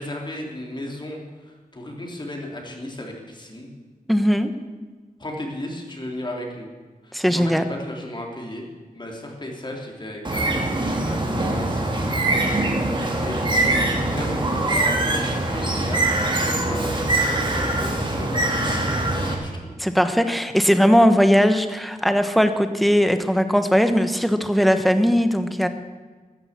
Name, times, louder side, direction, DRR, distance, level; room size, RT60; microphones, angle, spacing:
voice 1, 0.0-3.7 5.2-6.7 7.0-8.7 8.9-12.7 13.2-16.9 17.1-20.1, left 1 dB, 30° left, 0 dB, 3.2 m, -35 dB
voice 2, 4.1-4.5 7.1-7.6 19.8-25.7, equal, ahead, 8 dB, 1.2 m, -19 dB
Bird, 10.2-19.3, right 2 dB, 35° right, 2.8 m, -23 dB
14.0 x 10.5 x 8.7 m, 1.4 s
wide cardioid pair, 120°, 15 cm